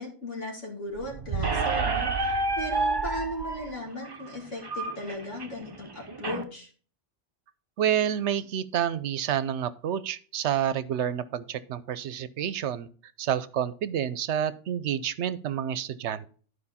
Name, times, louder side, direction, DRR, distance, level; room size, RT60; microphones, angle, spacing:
voice 1, 0.0-6.7, equal, 85° left, 0 dB, 2.8 m, -37 dB
sound 1, 0.9-3.7, right 7 dB, 50° right, 1.0 m, -35 dB
Squeak, 1.4-6.4, right 2 dB, 25° right, 0.7 m, -30 dB
voice 2, 7.8-12.9 13.2-16.3, right 9 dB, 75° right, 16 dB, 0.9 m, -29 dB
12.0 x 4.9 x 4.2 m, 0.41 s
omnidirectional pair, 1.2 m